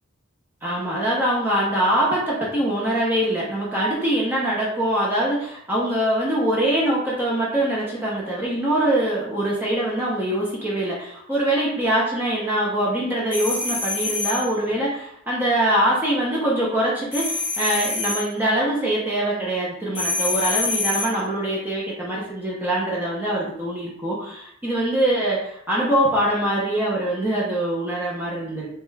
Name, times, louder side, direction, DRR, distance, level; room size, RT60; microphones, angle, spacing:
voice 1, 0.6-28.7, right 1 dB, 10° right, -6 dB, 0.6 m, -23 dB
sound 1, 13.3-14.5 17.1-18.3 19.9-21.2, left 3 dB, 10° left, 0.9 m, -26 dB
2.8 x 2.2 x 3.2 m, 0.75 s
head